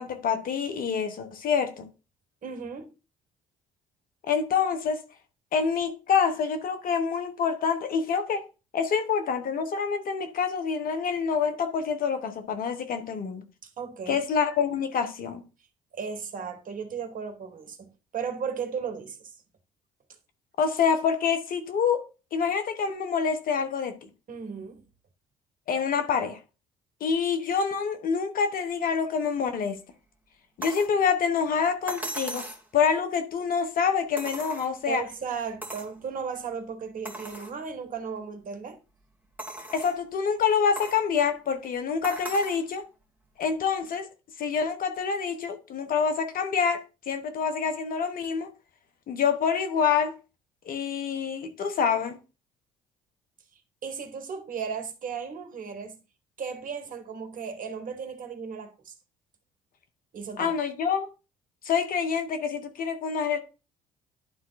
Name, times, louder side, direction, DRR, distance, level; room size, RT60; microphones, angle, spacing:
voice 1, 0.0-1.9 4.3-5.0 5.5-8.4 8.7-13.4 14.1-15.4 20.6-22.1 22.3-24.1 25.7-26.4 27.0-29.8 30.6-32.5 32.7-35.0 39.7-42.9 43.4-44.1 44.4-48.5 49.1-50.1 50.6-52.2 60.4-61.1 61.6-63.4, left 6 dB, 60° left, 1.5 m, -26 dB
voice 2, 2.4-2.9 13.6-14.2 15.9-19.3 24.3-24.8 34.9-38.8 53.8-56.0 56.4-58.9 60.1-60.5, right 6 dB, 55° right, 2.0 m, -35 dB
sound 1, 30.6-30.9 31.9-32.7 34.2-35.0 35.6-35.9 36.5-36.6 37.0-37.5 38.2-38.3 39.4-40.0 40.8-41.0 42.0-42.6 43.9-44.0, right 2 dB, 10° right, 2.4 m, -38 dB
11.0 x 3.9 x 4.1 m
hypercardioid pair, 60°, 17 cm